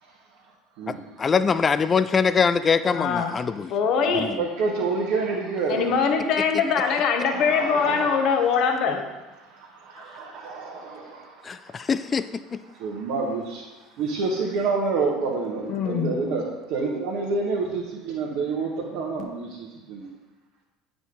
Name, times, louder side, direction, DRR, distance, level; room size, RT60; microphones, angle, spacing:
voice 1, 0.9-3.7 4.2-4.4 11.4-12.6, left 5 dB, 30° left, 13 dB, 0.3 m, -23 dB
voice 2, 2.9-3.3 3.7-4.3 5.7-9.0 15.7-16.2, left 6 dB, 55° left, 5 dB, 1.0 m, -23 dB
voice 3, 4.0-6.0 7.2-8.6 9.4-11.9 12.7-13.6 14.0-16.4 16.7-20.1, right 4 dB, 65° right, -3 dB, 1.2 m, -28 dB
9.1 x 5.0 x 3.8 m, 1.1 s
hypercardioid pair, 65°, 0 cm